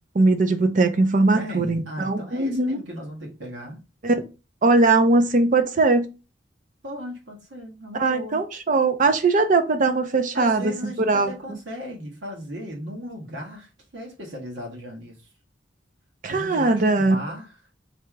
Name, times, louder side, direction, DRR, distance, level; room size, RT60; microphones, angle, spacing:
voice 1, 0.1-2.8 4.0-4.2 4.6-6.1 8.0-10.7 11.1-11.3 16.2-17.2, right 3 dB, 45° right, 0.6 m, -20 dB
voice 2, 1.3-3.8 6.8-8.4 10.3-15.2 16.3-17.5, equal, 75° right, 1.6 m, -36 dB
3.3 x 2.9 x 4.7 m
head